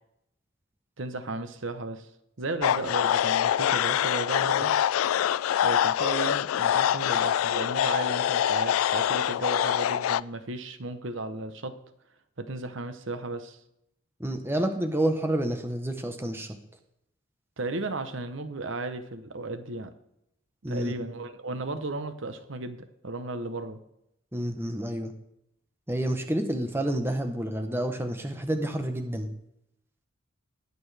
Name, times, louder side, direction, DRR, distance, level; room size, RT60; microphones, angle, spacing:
voice 1, 1.0-2.1 2.4-4.7 5.6-11.8 12.4-13.6 17.6-19.9 20.7-23.8, right 2 dB, 65° right, 9 dB, 0.9 m, -35 dB
sound 1, 2.6-10.2, left 10 dB, 85° left, 0.3 m, -25 dB
voice 2, 14.2-16.5 20.6-20.9 24.3-25.1 25.9-29.3, right 1 dB, 10° right, 6 dB, 1.0 m, -29 dB
20.0 x 6.9 x 3.4 m, 0.79 s
head